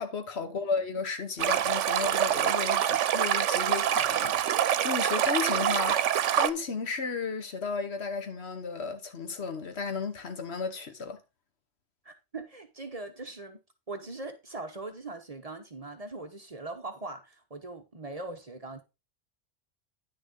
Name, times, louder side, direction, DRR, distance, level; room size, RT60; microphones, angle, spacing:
voice 1, 0.0-11.2, left 5 dB, 65° left, 1.3 m, -34 dB
Stream, 1.4-6.5, right 10 dB, 85° right, 1.0 m, -26 dB
voice 2, 12.0-13.6 13.9-18.8, right 2 dB, 35° right, 1.0 m, -41 dB
9.9 x 6.4 x 3.7 m
omnidirectional pair, 1.2 m